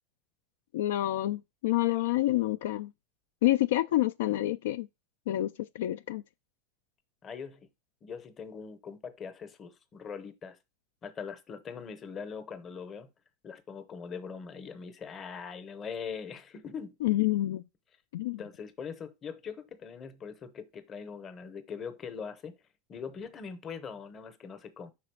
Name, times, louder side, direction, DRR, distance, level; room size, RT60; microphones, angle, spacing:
voice 1, 0.7-2.9 3.4-4.9 5.3-6.2 17.0-17.6 18.1-18.4, left 15 dB, 80° left, 0.3 m, -28 dB
voice 2, 7.2-7.7 8.0-10.6 11.0-13.1 13.4-17.0 18.4-22.5 22.9-24.9, left 6 dB, 20° left, 0.8 m, -41 dB
5.8 x 4.1 x 4.6 m
supercardioid pair, 170°, 0 cm